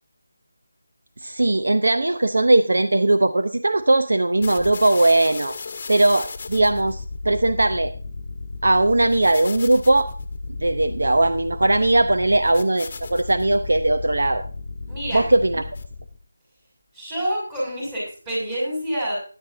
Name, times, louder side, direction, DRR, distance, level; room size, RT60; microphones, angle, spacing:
voice 1, 1.2-5.6 5.9-7.9 8.6-10.1 10.6-14.4 15.1-15.6, right 2 dB, 70° right, 8 dB, 0.7 m, -19 dB
sound 1, 4.4-16.2, left 3 dB, 35° left, 1.1 m, -34 dB
voice 2, 14.9-15.3 16.9-19.2, equal, 15° right, -3 dB, 6.0 m, -27 dB
14.0 x 10.0 x 2.7 m, 0.38 s
figure-of-eight pair, 165°, 0 cm